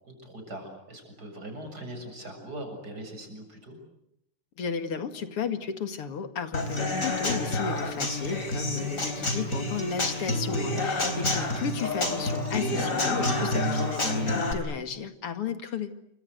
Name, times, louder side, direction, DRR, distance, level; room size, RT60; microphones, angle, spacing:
voice 1, 0.0-3.8 9.2-9.6 11.1-11.7, right 1 dB, 45° right, 5 dB, 7.9 m, -41 dB
voice 2, 4.6-15.9, left 6 dB, 80° left, 9 dB, 3.0 m, -34 dB
Human voice / Acoustic guitar / Drum, 6.5-14.5, left 2 dB, 35° left, 4.4 m, -28 dB
29.0 x 25.5 x 8.0 m, 0.77 s
omnidirectional pair, 2.4 m